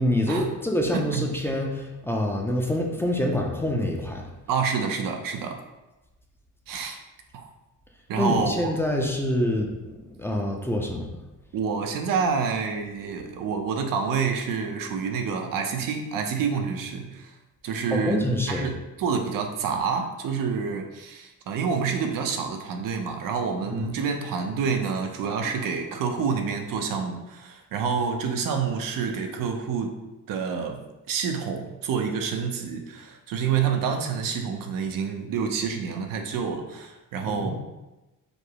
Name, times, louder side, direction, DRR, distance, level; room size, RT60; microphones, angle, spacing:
voice 1, 0.0-4.3 8.2-11.1 17.9-18.7 23.7-23.8 37.3-37.6, left 1 dB, 5° left, 0 dB, 0.4 m, -26 dB
voice 2, 4.5-5.6 6.7-7.0 7.3-7.5 8.1-8.7 11.5-17.3 17.6-18.2 18.5-29.9 30.3-30.8 31.1-37.6, right 6 dB, 80° right, 4 dB, 0.7 m, -28 dB
5.1 x 2.0 x 4.6 m, 1.0 s
cardioid pair, 150°, 33 cm